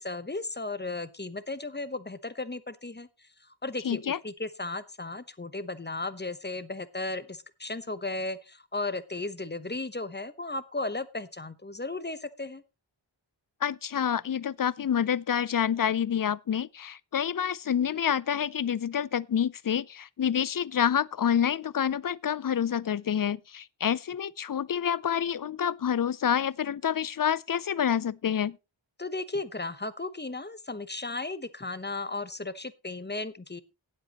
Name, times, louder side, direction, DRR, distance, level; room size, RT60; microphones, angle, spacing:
voice 1, 0.0-12.6 29.0-33.6, left 2 dB, 20° left, 0.9 m, -35 dB
voice 2, 3.8-4.2 13.6-28.6, left 8 dB, 50° left, 0.5 m, -28 dB
18.0 x 7.8 x 2.9 m
wide cardioid pair, 70°, 46 cm